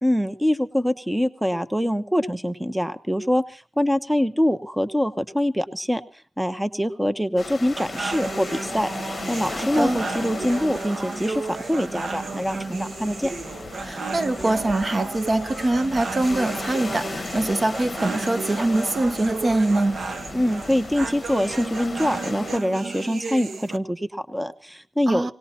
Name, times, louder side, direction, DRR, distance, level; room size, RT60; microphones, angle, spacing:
voice 1, 0.0-6.0 6.4-13.3 20.3-25.3, equal, 5° right, 0.7 m, -24 dB
sound 1, 7.4-22.6, left 4 dB, 40° left, 0.9 m, -36 dB
sound 2, 7.8-23.8, right 4 dB, 70° right, 1.0 m, -33 dB
voice 2, 9.5-10.0 13.8-20.0 25.1-25.3, right 2 dB, 35° right, 0.8 m, -23 dB
18.5 x 18.0 x 4.2 m
wide cardioid pair, 130°, 0 cm